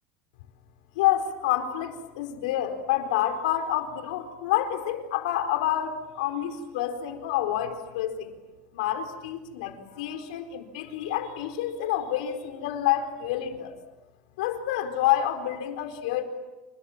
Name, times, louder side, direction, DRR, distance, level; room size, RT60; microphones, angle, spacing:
voice 1, 1.0-8.3 8.7-13.7 14.4-16.2, left 11 dB, 85° left, 7 dB, 4.4 m, -28 dB
29.5 x 27.5 x 7.4 m, 1.1 s
supercardioid pair, 125°, 4 cm